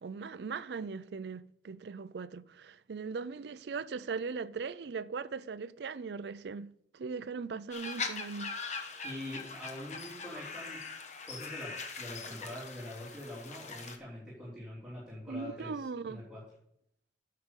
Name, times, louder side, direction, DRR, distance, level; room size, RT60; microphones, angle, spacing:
voice 1, 0.0-8.6 15.3-16.2, right 5 dB, 70° right, 0.4 m, -39 dB
sound 1, 7.7-14.0, left 4 dB, 40° left, 1.1 m, -41 dB
voice 2, 9.0-10.8 11.3-16.4, left 1 dB, 5° right, 3.2 m, -44 dB
9.6 x 6.7 x 5.3 m
head